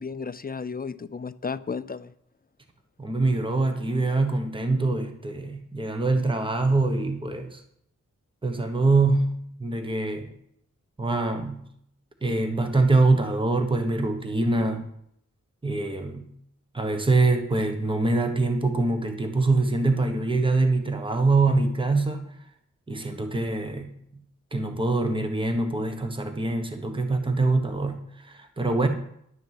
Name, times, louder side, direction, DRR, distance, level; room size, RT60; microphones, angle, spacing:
voice 1, 0.0-2.1, left 5 dB, 30° left, 14 dB, 0.4 m, -33 dB
voice 2, 3.0-7.6 8.4-10.3 11.0-11.6 12.2-14.8 15.6-16.3 16.7-22.3 22.9-23.9 24.5-28.9, right 3 dB, 15° right, 6 dB, 1.2 m, -24 dB
11.0 x 7.0 x 7.6 m, 0.70 s
wide cardioid pair, 145°, 31 cm